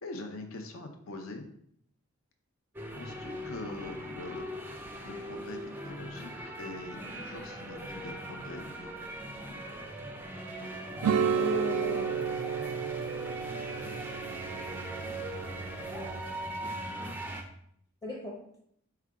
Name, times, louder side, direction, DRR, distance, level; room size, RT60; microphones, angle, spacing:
voice 1, 0.0-1.5 2.9-4.4 5.0-6.3 6.6-8.9, left 2 dB, 65° left, 4 dB, 0.7 m, -43 dB
sound 1, 2.7-17.4, right 1 dB, 10° right, 0.3 m, -40 dB
sound 2, 11.0-16.2, right 7 dB, 90° right, 0.3 m, -32 dB
voice 2, 11.3-12.1 15.9-17.1 18.0-18.4, left 2 dB, 15° left, -3 dB, 0.8 m, -39 dB
4.8 x 2.2 x 4.7 m, 0.70 s
head